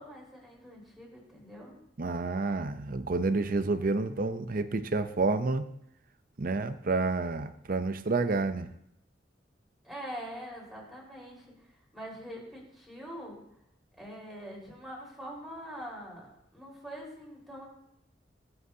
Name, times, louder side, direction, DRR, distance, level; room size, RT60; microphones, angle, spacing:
voice 1, 0.0-1.8 9.8-11.5 11.9-13.4 14.0-17.7, equal, ahead, -5 dB, 4.6 m, -44 dB
voice 2, 2.0-5.7 6.4-8.7, right 3 dB, 50° right, 11 dB, 0.7 m, -29 dB
23.0 x 7.8 x 2.8 m, 0.79 s
head